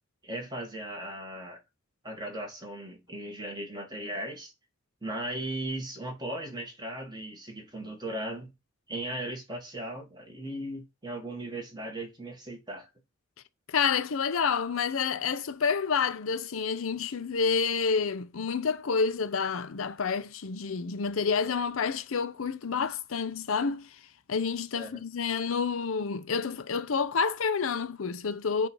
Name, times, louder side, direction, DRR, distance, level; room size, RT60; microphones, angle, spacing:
voice 1, 0.2-1.6 2.0-4.5 5.0-8.5 8.9-12.9 24.7-25.0, right 1 dB, 20° right, 1.6 m, -37 dB
voice 2, 13.7-24.0 24.3-28.7, left 5 dB, 80° left, 0.6 m, -29 dB
7.8 x 2.6 x 4.6 m
head